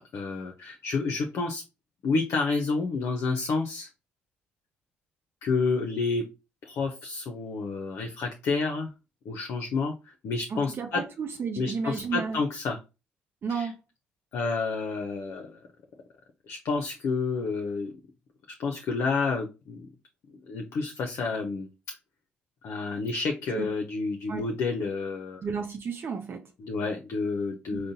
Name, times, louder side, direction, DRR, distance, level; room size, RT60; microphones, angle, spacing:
voice 1, 0.0-1.6 2.0-3.9 5.4-6.3 6.6-8.9 9.3-11.0 11.6-12.8 13.5-13.7 14.3-15.5 16.5-17.9 18.6-19.9 20.5-21.7 22.6-25.4 26.6-27.9, left 4 dB, 65° left, 0.6 m, -29 dB
voice 2, 10.5-12.4 13.4-13.8 23.5-23.7 24.3-24.4 25.4-26.5 27.7-27.8, right 5 dB, 50° right, 0.5 m, -32 dB
3.7 x 2.1 x 2.7 m
supercardioid pair, 60°, 5 cm